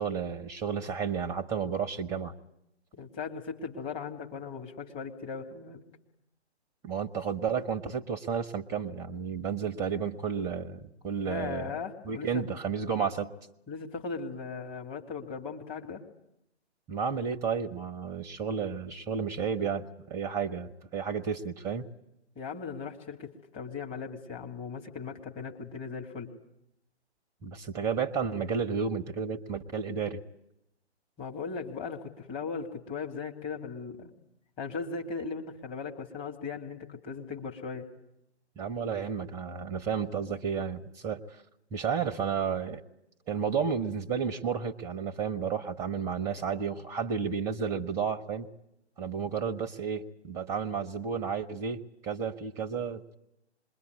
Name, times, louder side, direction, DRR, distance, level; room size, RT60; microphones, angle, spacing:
voice 1, 0.0-2.3 6.8-11.7 12.0-13.3 16.9-21.9 27.4-30.2 38.6-41.2 41.7-42.8 43.3-48.5 49.0-53.2, right 6 dB, 10° right, 8 dB, 1.0 m, -32 dB
voice 2, 2.9-5.8 11.2-12.5 13.7-16.0 22.4-26.3 31.2-34.1 34.6-37.9, left 5 dB, 15° left, 1 dB, 2.7 m, -38 dB
27.0 x 22.5 x 9.7 m, 0.81 s
figure-of-eight pair, 140°, 34 cm